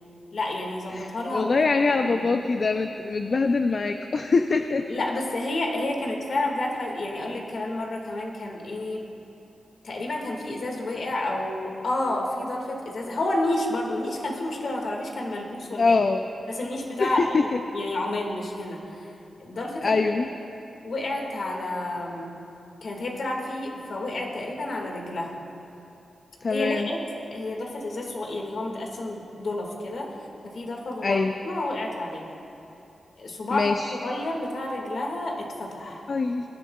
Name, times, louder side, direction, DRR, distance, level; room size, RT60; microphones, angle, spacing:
voice 1, 0.3-2.3 4.9-9.1 9.8-16.0 16.5-19.1 19.4-20.0 20.8-22.3 22.8-25.3 26.5-27.0 27.3-30.2 30.4-32.2 33.2-36.1, left 2 dB, 65° left, 0 dB, 1.8 m, -30 dB
voice 2, 0.9-4.9 15.8-16.2 17.0-17.4 19.8-20.3 26.4-26.9 31.0-31.3 33.5-33.9 36.1-36.4, left 4 dB, 45° left, 6 dB, 0.4 m, -23 dB
23.5 x 11.0 x 2.3 m, 2.9 s
wide cardioid pair, 120°, 0 cm